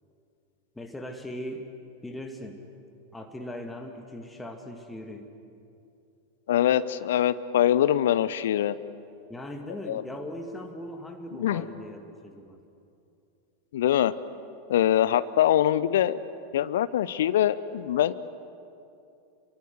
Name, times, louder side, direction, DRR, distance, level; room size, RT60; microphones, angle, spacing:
voice 1, 0.8-1.7 2.0-2.6 3.1-5.3 9.3-12.6, left 1 dB, 5° left, 3 dB, 2.1 m, -39 dB
voice 2, 6.5-8.8 9.9-10.0 11.4-11.6 13.7-14.1 14.7-16.2 16.5-18.1, left 11 dB, 60° left, 16 dB, 0.7 m, -23 dB
28.0 x 24.0 x 8.0 m, 2.6 s
figure-of-eight pair, 90°, 0 cm